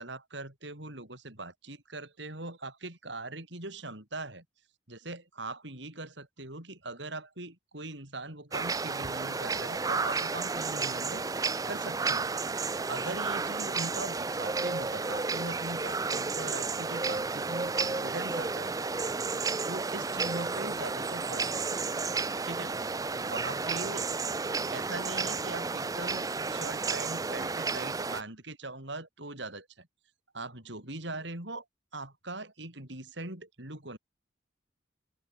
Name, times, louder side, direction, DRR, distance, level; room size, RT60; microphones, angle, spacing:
voice 1, 0.0-4.4 4.9-11.2 11.7-12.2 12.8-18.7 19.7-21.8 22.5-22.7 23.3-24.1 24.7-29.9 30.3-31.6 31.9-34.0, right 2 dB, 65° right, 6.2 m, -41 dB
sound 1, 8.5-28.2, right 4 dB, 20° right, 0.4 m, -32 dB
open air
head